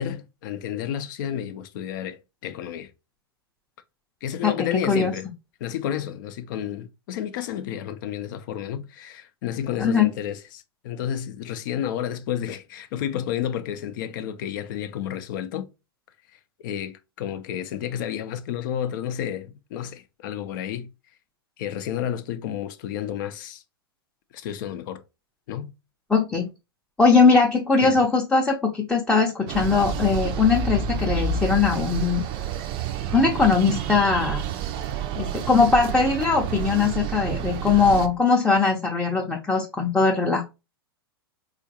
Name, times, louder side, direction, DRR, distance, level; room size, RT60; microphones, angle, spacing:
voice 1, 0.0-2.9 4.2-5.3 5.6-15.7 16.3-20.9 21.6-23.6 24.3-25.0 25.5-25.7 27.8-28.0, left 10 dB, 55° left, 0.6 m, -31 dB
voice 2, 4.4-5.1 9.8-10.1 26.1-26.5 27.0-32.2 33.1-34.4 35.2-40.5, left 4 dB, 5° left, 0.6 m, -20 dB
sound 1, 29.5-38.1, right 7 dB, 40° right, 0.5 m, -29 dB
3.7 x 2.5 x 2.7 m
hypercardioid pair, 105°, 13 cm